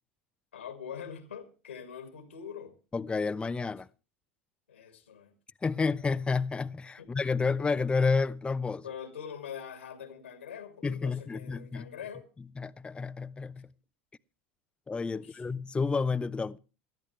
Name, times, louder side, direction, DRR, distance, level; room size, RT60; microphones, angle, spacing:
voice 1, 0.5-2.7 4.7-5.3 7.0-7.1 8.8-12.3 15.1-15.4, left 8 dB, 85° left, 2.3 m, -43 dB
voice 2, 2.9-3.9 5.6-8.8 10.8-11.9 12.6-13.7 14.9-16.6, left 4 dB, 15° left, 0.7 m, -30 dB
19.5 x 13.5 x 3.3 m
hypercardioid pair, 80°, 7 cm